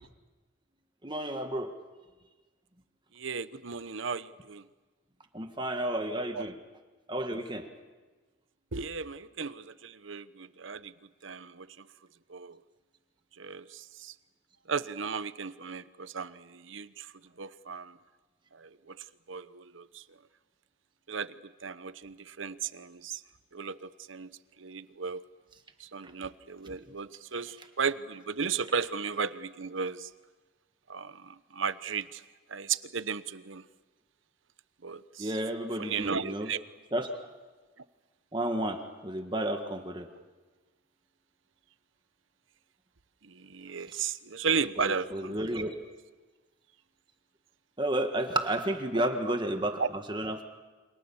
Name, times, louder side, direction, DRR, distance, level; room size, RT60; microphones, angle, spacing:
voice 1, 1.0-1.7 5.3-6.5 7.1-7.6 35.2-36.5 36.9-37.1 38.3-40.1 45.1-45.7 47.8-50.4, right 1 dB, 25° right, 5 dB, 1.7 m, -31 dB
voice 2, 3.1-4.6 6.3-6.5 8.7-10.9 11.2-11.9 12.3-12.6 13.4-14.1 14.7-18.0 18.5-20.2 21.1-21.3 21.6-23.2 23.5-24.3 24.6-25.2 25.8-30.1 30.9-32.2 32.5-33.6 34.8-35.3 35.8-36.6 43.2-45.6 49.3-49.4 49.8-49.9, right 5 dB, 75° right, 14 dB, 0.9 m, -35 dB
29.0 x 26.5 x 7.2 m, 1.3 s
head